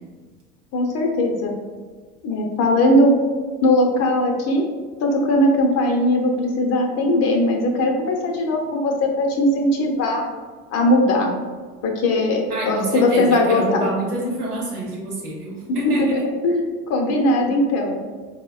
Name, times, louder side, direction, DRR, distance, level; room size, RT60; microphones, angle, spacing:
voice 1, 0.7-1.5 2.2-3.2 3.6-4.6 5.0-10.2 10.7-11.3 11.8-13.9 15.8-18.0, left 1 dB, 35° left, 2 dB, 0.5 m, -19 dB
voice 2, 12.5-16.1, right 2 dB, 85° right, -3 dB, 1.0 m, -27 dB
4.1 x 2.1 x 2.3 m, 1.4 s
hypercardioid pair, 85°, 44 cm